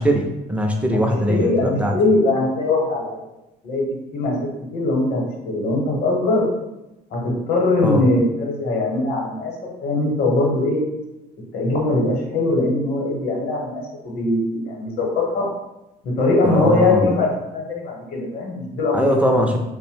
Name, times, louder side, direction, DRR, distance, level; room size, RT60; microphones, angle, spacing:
voice 1, 0.0-1.9 7.8-8.0 16.4-17.1 18.9-19.6, equal, 10° right, 2 dB, 0.4 m, -20 dB
voice 2, 1.0-3.2 3.6-3.8 4.1-4.4 4.7-6.5 7.1-9.5 9.8-10.8 11.5-15.5 16.0-19.2, left 2 dB, 65° left, -1 dB, 0.8 m, -21 dB
2.6 x 2.0 x 3.1 m, 0.95 s
cardioid pair, 110°, 17 cm